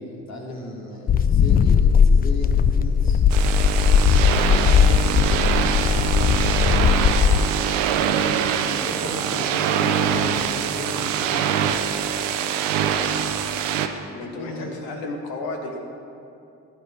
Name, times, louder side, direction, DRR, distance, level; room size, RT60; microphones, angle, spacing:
voice 1, 0.0-3.2 4.2-7.4 8.8-11.8 14.3-14.8, left 2 dB, 45° left, -1 dB, 2.5 m, -36 dB
sound 1, 1.1-7.5, left 7 dB, 25° left, 0.4 m, -18 dB
sound 2, 3.3-13.9, right 8 dB, 80° right, 0.6 m, -23 dB
voice 2, 14.1-15.8, left 3 dB, 70° left, 2 dB, 1.5 m, -34 dB
17.0 x 8.9 x 3.3 m, 2.7 s
figure-of-eight pair, 40°, 37 cm